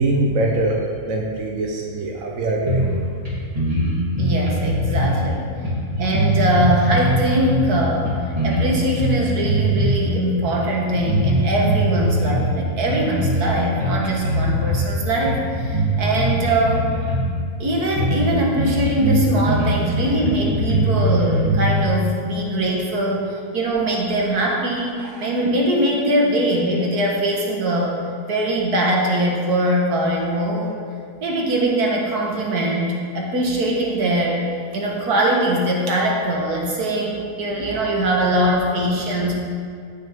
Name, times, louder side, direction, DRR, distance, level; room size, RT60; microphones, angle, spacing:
voice 1, 0.0-3.1 3.9-4.0, right 2 dB, 60° right, -1 dB, 1.3 m, -23 dB
sound 1, 2.7-3.0 3.2-3.3 3.5-5.2 5.6-7.7 8.0-10.0 10.3-10.5 10.9-12.5 12.9-13.5 13.8-14.9 15.2-17.3 17.7-17.8 18.0-18.3 18.6-21.9, right 1 dB, 20° right, 3.0 m, -21 dB
voice 2, 4.2-5.5 6.0-16.9 17.6-28.0 28.3-30.8 31.2-39.3, right 1 dB, 75° right, -1 dB, 1.9 m, -22 dB
15.0 x 6.5 x 3.6 m, 2.2 s
omnidirectional pair, 1.7 m